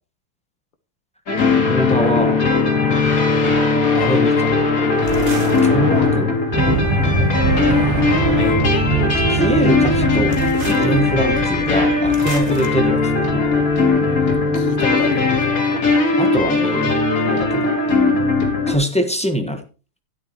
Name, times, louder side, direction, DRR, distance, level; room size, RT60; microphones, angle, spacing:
sound 1, 1.3-18.7, left 3 dB, 50° left, 2.4 m, -18 dB
voice 1, 1.7-2.4 3.9-4.5 5.6-6.3 9.3-13.6 16.2-17.8 18.7-19.6, equal, 5° left, 1.1 m, -23 dB
sound 2, 5.0-6.5 7.4-8.9 10.3-10.9 12.1-12.7, right 2 dB, 30° right, 1.5 m, -29 dB
sound 3, 6.5-15.0, right 3 dB, 45° right, 0.3 m, -24 dB
voice 2, 7.5-8.6 10.8-11.1 14.5-15.9, left 5 dB, 30° left, 1.1 m, -30 dB
12.5 x 9.9 x 3.0 m
omnidirectional pair, 2.0 m